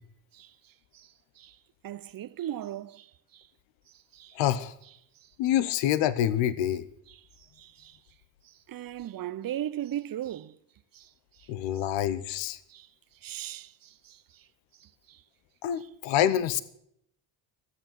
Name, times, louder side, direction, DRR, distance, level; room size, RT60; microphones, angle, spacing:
voice 1, 0.3-1.6 1.8-3.5 4.1-4.4 5.2-5.3 7.1-8.0 8.4-10.6 10.9-11.5 11.7-11.9 12.7-12.9 13.2-14.5 14.8-15.2 15.8-15.9, right 12 dB, 50° right, 0.8 m, -39 dB
voice 2, 4.3-4.7 5.4-6.8 11.5-12.6 15.6-16.6, left 11 dB, 80° left, 0.9 m, -26 dB
12.5 x 8.1 x 8.9 m
supercardioid pair, 65°, 44 cm